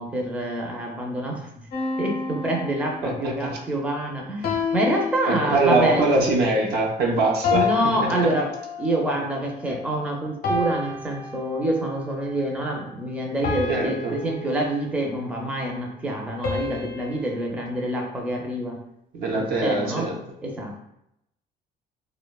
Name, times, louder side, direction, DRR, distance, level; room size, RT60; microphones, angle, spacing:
voice 1, 0.0-1.5 2.0-6.0 7.5-8.5 8.8-18.8 19.3-20.1 20.4-20.8, right 1 dB, 10° right, -1 dB, 0.4 m, -27 dB
sound 1, 1.7-3.4 4.4-5.9 7.4-9.1 10.4-12.0 13.4-15.2 16.4-17.5, left 4 dB, 60° left, 0.6 m, -29 dB
voice 2, 3.0-3.5 5.3-7.7 8.0-8.3 13.7-14.1 19.1-20.2, right 2 dB, 70° right, 0 dB, 0.6 m, -23 dB
2.7 x 2.1 x 2.2 m, 0.80 s
cardioid pair, 110°, 17 cm